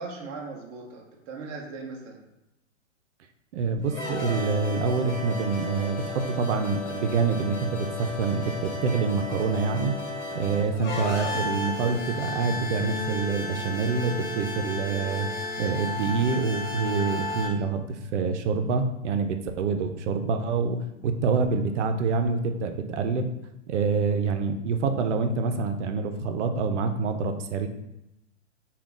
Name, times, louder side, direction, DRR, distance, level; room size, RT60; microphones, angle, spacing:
voice 1, 0.0-2.2, right 4 dB, 20° right, -1 dB, 0.3 m, -38 dB
voice 2, 3.5-10.0 10.3-15.3 15.6-23.3 23.7-27.7, right 4 dB, 75° right, 7 dB, 0.5 m, -26 dB
sound 1, 3.8-17.5, left 2 dB, 65° left, 1.1 m, -34 dB
3.6 x 2.3 x 3.6 m, 0.89 s
hypercardioid pair, 135°, 37 cm